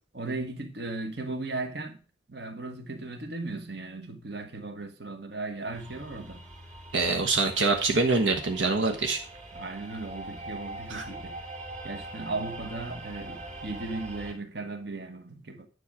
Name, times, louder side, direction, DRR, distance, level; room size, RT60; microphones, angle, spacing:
voice 1, 0.1-2.0 2.3-6.4 9.5-11.4 11.8-15.7, right 2 dB, 60° right, 1.5 m, -36 dB
sound 1, 5.7-14.3, right 2 dB, 40° right, 2.9 m, -43 dB
voice 2, 6.9-9.2 10.9-11.0, right 3 dB, 75° right, 1.3 m, -25 dB
10.0 x 6.5 x 4.9 m
head